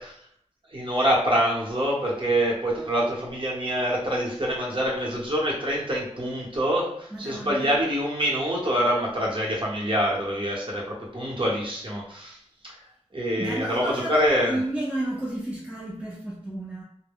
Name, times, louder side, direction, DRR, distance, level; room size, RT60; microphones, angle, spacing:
voice 1, 0.7-12.4 13.1-14.6, equal, 45° right, -4 dB, 0.9 m, -25 dB
voice 2, 7.1-7.7 13.4-16.8, right 1 dB, 10° right, -4 dB, 0.6 m, -32 dB
2.2 x 2.0 x 3.5 m, 0.69 s
wide cardioid pair, 65°, 12 cm